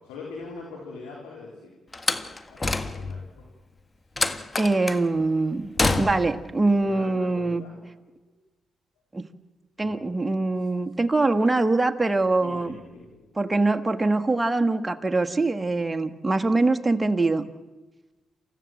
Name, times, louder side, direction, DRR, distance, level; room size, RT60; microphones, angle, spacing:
voice 1, 0.0-1.7 2.1-3.5 4.7-4.8 6.8-7.8 9.8-9.9 12.4-13.3, left 4 dB, 90° left, -3 dB, 3.8 m, -43 dB
Slam, 1.9-3.3 4.2-5.1 5.8-6.4, left 3 dB, 30° left, 1.6 m, -27 dB
voice 2, 4.6-7.6 9.1-9.2 9.8-12.8 13.4-17.5, right 2 dB, 20° right, 6 dB, 1.7 m, -23 dB
28.5 x 15.0 x 7.8 m, 1.2 s
hypercardioid pair, 45°, 0 cm